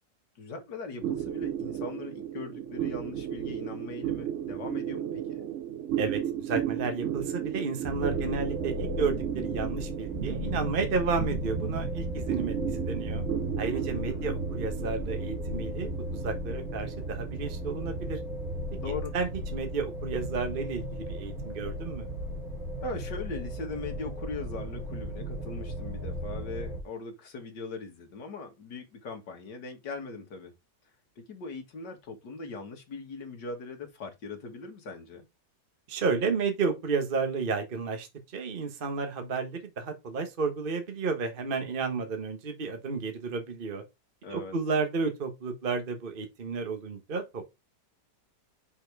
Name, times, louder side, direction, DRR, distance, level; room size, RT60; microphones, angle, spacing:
voice 1, 0.4-5.5 8.1-8.5 13.7-14.3 18.8-19.1 22.8-30.6 31.2-35.3 44.2-44.6, left 3 dB, 80° left, 2.2 m, -40 dB
sound 1, 1.0-19.8, right 10 dB, 75° right, 0.6 m, -35 dB
voice 2, 6.0-13.2 13.6-18.2 18.9-22.1 35.9-43.8 44.3-47.5, right 4 dB, 35° right, 1.3 m, -32 dB
sound 2, 7.8-26.8, equal, 55° right, 2.4 m, -35 dB
5.9 x 4.5 x 4.6 m
omnidirectional pair, 1.8 m